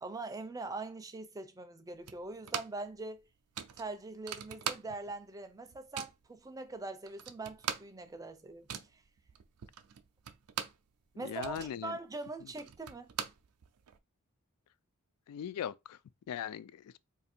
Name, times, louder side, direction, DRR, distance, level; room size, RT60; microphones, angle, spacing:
voice 1, 0.0-3.3 3.8-9.0 11.2-13.1, right 3 dB, 15° right, 0.4 m, -42 dB
sound 1, 2.1-2.9 3.2-3.3 3.5-5.2 5.5-6.2 6.8-6.9 7.1-10.9 11.2-14.0, right 8 dB, 90° right, 0.5 m, -41 dB
voice 2, 11.2-12.0 15.3-16.0 16.3-17.0, left 9 dB, 85° left, 0.3 m, -39 dB
2.6 x 2.6 x 4.2 m
head